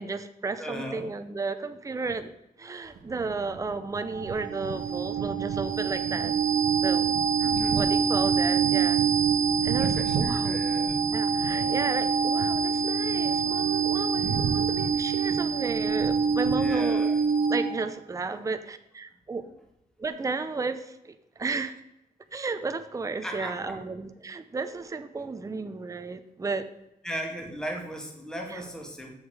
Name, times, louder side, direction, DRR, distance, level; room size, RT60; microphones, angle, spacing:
voice 1, 0.0-2.3 2.6-6.3 6.8-7.1 7.7-9.0 9.6-10.6 11.1-17.1 17.5-19.4 20.0-21.7 22.3-26.7 28.5-28.6, right 4 dB, 20° right, 9 dB, 0.6 m, -33 dB
voice 2, 0.6-1.1 7.4-8.6 9.8-11.0 11.5-11.8 16.6-17.2 23.2-23.8 27.0-29.1, right 1 dB, 5° left, 1 dB, 1.8 m, -38 dB
sound 1, 2.9-17.2, right 5 dB, 85° right, 0.8 m, -37 dB
sound 2, 4.0-17.9, right 6 dB, 55° right, 1.4 m, -26 dB
7.0 x 6.5 x 4.7 m, 0.86 s
cardioid pair, 90°, 16 cm